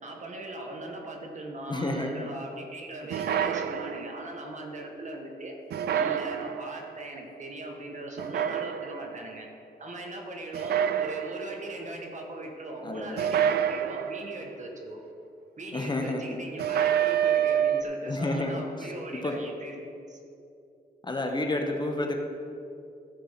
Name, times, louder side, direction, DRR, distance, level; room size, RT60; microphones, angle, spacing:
voice 1, 0.0-5.6 5.9-9.5 9.8-15.0 15.6-19.8 20.1-20.2, right 1 dB, 45° right, 1 dB, 1.7 m, -39 dB
voice 2, 1.7-2.3 12.8-13.2 15.7-16.4 18.1-18.5 19.1-19.4 21.0-22.2, left 2 dB, 25° left, 3 dB, 1.1 m, -30 dB
sound 1, 3.1-4.3 5.7-6.9 8.2-9.2 10.5-11.7 13.2-14.5 16.6-17.8, right 9 dB, 75° right, 0.4 m, -27 dB
14.5 x 4.9 x 5.8 m, 2.6 s
cardioid pair, 85°, 17 cm